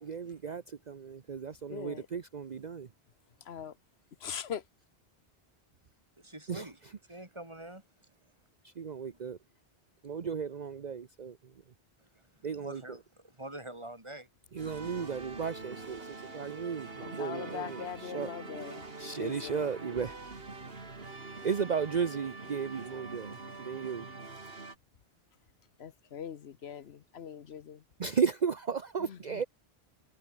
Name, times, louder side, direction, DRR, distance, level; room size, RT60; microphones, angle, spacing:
voice 1, 0.0-2.9 6.5-6.7 8.6-9.4 10.0-11.5 12.4-13.0 14.5-18.3 19.0-20.2 21.4-24.1 28.0-29.4, right 6 dB, 45° right, 0.9 m, -35 dB
voice 2, 1.7-2.0 3.5-3.7 4.2-4.6 17.0-18.8 19.2-19.6 25.8-27.8, left 8 dB, 80° left, 1.2 m, -41 dB
voice 3, 6.2-6.8 7.1-7.8 12.1-13.0 13.4-14.3, right 1 dB, 25° right, 3.4 m, -45 dB
sound 1, 14.6-24.8, right 3 dB, 65° right, 2.7 m, -44 dB
omnidirectional pair, 1.1 m